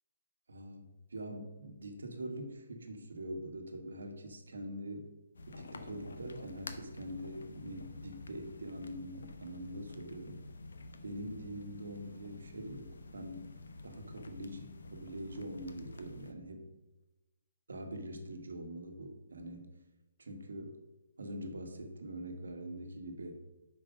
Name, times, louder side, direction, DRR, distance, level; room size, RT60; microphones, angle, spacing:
voice 1, 0.5-5.1 5.5-10.4 11.0-13.5 13.8-16.7 17.7-19.7 20.2-20.8 21.2-23.3, right 1 dB, 85° right, 5 dB, 1.3 m, -44 dB
sound 1, 5.3-16.3, left 2 dB, 80° left, 0.9 m, -50 dB
6.0 x 5.0 x 5.0 m, 1.1 s
hypercardioid pair, 160°, 0 cm